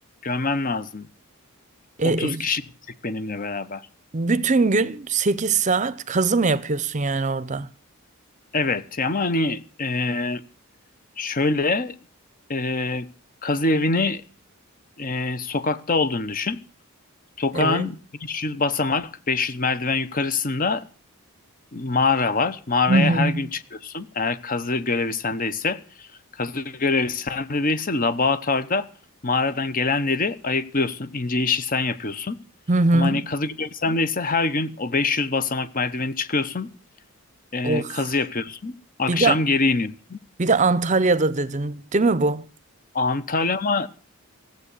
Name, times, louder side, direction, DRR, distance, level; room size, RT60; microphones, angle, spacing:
voice 1, 0.2-1.1 2.0-2.6 3.0-3.9 8.5-10.4 11.2-11.9 12.5-13.1 13.4-14.2 15.0-16.6 17.4-20.9 21.7-26.1 26.3-28.9 29.2-32.4 32.9-36.7 37.5-40.2 42.9-43.9, left 3 dB, 40° left, 0.9 m, -24 dB
voice 2, 2.0-2.4 4.1-7.7 17.5-17.9 22.9-23.3 32.7-33.2 37.6-38.0 39.1-39.4 40.4-42.4, right 3 dB, 35° right, 0.7 m, -21 dB
15.5 x 8.0 x 8.2 m
head